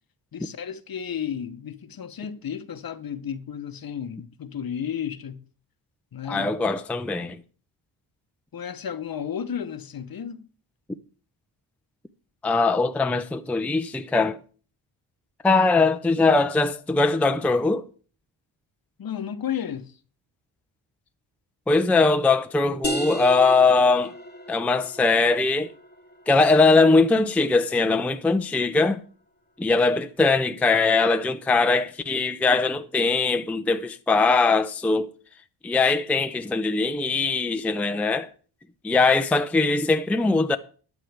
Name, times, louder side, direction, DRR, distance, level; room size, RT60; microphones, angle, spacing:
voice 1, 0.3-5.4 6.1-6.5 8.5-10.5 19.0-19.9 38.9-39.0, left 8 dB, 45° left, 0.9 m, -33 dB
voice 2, 6.3-7.4 12.4-14.4 15.4-17.8 21.7-24.1 24.5-25.7 26.3-29.0 29.6-35.1 35.6-38.3 38.8-40.6, left 3 dB, 5° left, 0.5 m, -21 dB
sound 1, 22.8-28.2, left 1 dB, 20° left, 1.1 m, -36 dB
14.0 x 9.9 x 3.4 m
cardioid pair, 100°, 48 cm